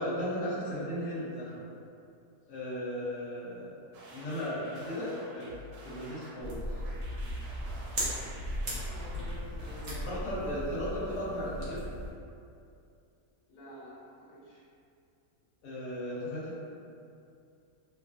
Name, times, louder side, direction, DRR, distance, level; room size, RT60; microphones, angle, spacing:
voice 1, 0.0-1.7 2.5-3.7 4.1-5.4 5.8-6.6 9.9-11.8 15.6-16.6, equal, 85° left, -10 dB, 1.3 m, -36 dB
sound 1, 3.9-9.9, equal, 80° right, 1.1 m, -50 dB
sound 2, 6.4-12.1, equal, 50° right, 1.0 m, -37 dB
voice 2, 8.6-10.6 13.5-14.6, equal, 70° left, -8 dB, 1.4 m, -49 dB
2.8 x 2.3 x 2.4 m, 2.5 s
omnidirectional pair, 1.7 m